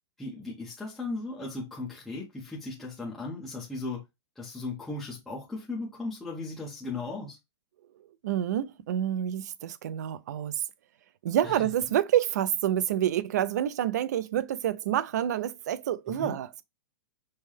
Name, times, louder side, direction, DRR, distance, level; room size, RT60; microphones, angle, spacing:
voice 1, 0.2-4.0 4.4-7.4 11.4-11.7 16.1-16.3, left 3 dB, ahead, 0.6 m, -37 dB
voice 2, 8.2-10.6 11.2-16.6, right 11 dB, 40° right, 0.3 m, -28 dB
5.4 x 2.1 x 3.2 m
hypercardioid pair, 175°, 14 cm